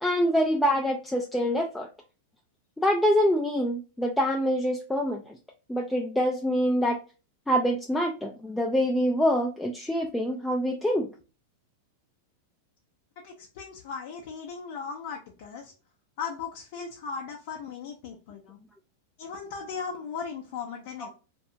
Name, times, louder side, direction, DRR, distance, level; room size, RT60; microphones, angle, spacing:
voice 1, 0.0-1.9 2.8-5.4 5.7-7.0 7.5-11.1, equal, 5° left, 0 dB, 0.3 m, -25 dB
voice 2, 13.2-15.7 16.2-18.6 19.2-21.1, left 6 dB, 60° left, 0 dB, 0.5 m, -37 dB
2.7 x 2.2 x 2.6 m, 0.34 s
hypercardioid pair, 120°, 0 cm